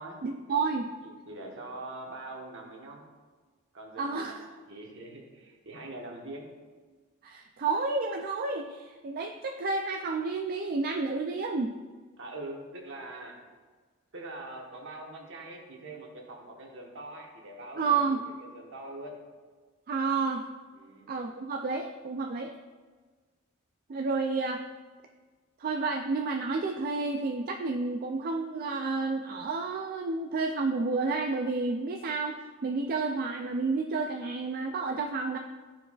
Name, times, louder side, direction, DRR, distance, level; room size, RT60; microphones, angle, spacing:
voice 1, 0.2-0.9 4.0-4.3 7.2-11.7 17.8-18.2 19.9-20.4 21.1-22.5 23.9-24.6 25.6-35.4, right 4 dB, 45° right, 3 dB, 0.4 m, -30 dB
voice 2, 1.0-3.0 3.7-6.5 12.2-13.4 14.1-19.2 20.7-21.1, right 2 dB, 65° right, 0 dB, 1.3 m, -43 dB
12.0 x 4.6 x 2.4 m, 1.4 s
head